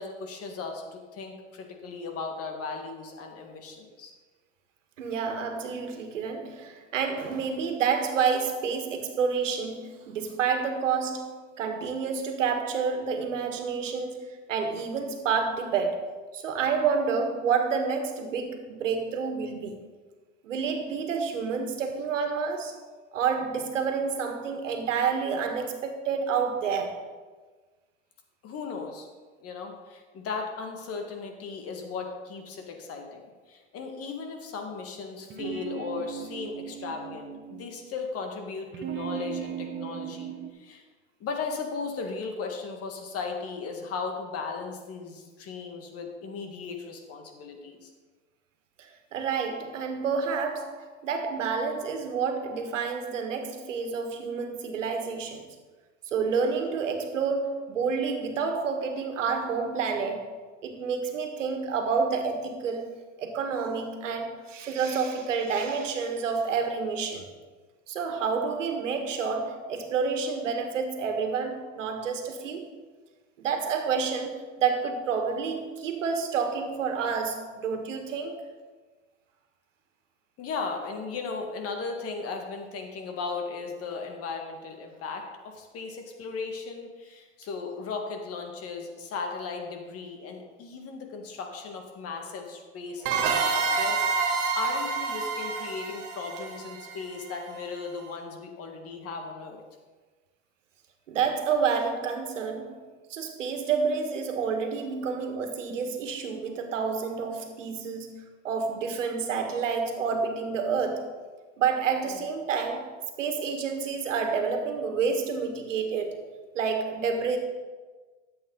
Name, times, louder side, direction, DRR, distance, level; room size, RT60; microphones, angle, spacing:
voice 1, 0.0-4.1 28.4-29.1 29.4-40.8 41.2-47.9 80.4-99.6 112.1-112.2, left 4 dB, 40° left, 3 dB, 1.9 m, -37 dB
voice 2, 5.0-19.8 20.4-22.8 23.1-27.0 48.8-55.5 56.1-60.3 60.6-62.9 63.2-67.3 67.9-72.7 73.4-78.4 93.0-93.5 101.1-102.8 103.1-108.1 108.4-111.1 111.6-112.9 113.2-116.2 116.6-117.4, right 5 dB, 85° right, 5 dB, 1.8 m, -29 dB
sound 1, 35.2-37.7 38.7-40.5, right 9 dB, 30° right, 1.2 m, -37 dB
sound 2, 93.0-97.6, right 5 dB, 60° right, 2.2 m, -28 dB
13.0 x 7.9 x 3.9 m, 1.3 s
hypercardioid pair, 105°, 37 cm